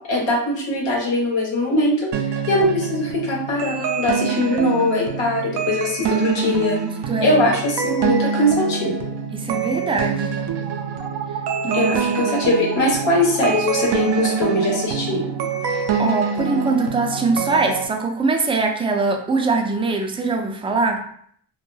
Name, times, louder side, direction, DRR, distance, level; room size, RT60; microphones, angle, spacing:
voice 1, 0.1-2.1 2.5-6.8 7.2-9.0 11.7-15.2, left 1 dB, 75° left, -2 dB, 1.0 m, -21 dB
sound 1, 2.1-17.9, right 6 dB, 65° right, 0.5 m, -25 dB
voice 2, 6.5-7.4 9.3-10.4 11.6-12.3 15.7-21.0, right 3 dB, 15° right, 3 dB, 0.4 m, -23 dB
2.2 x 2.1 x 3.1 m, 0.63 s
cardioid pair, 60°, 44 cm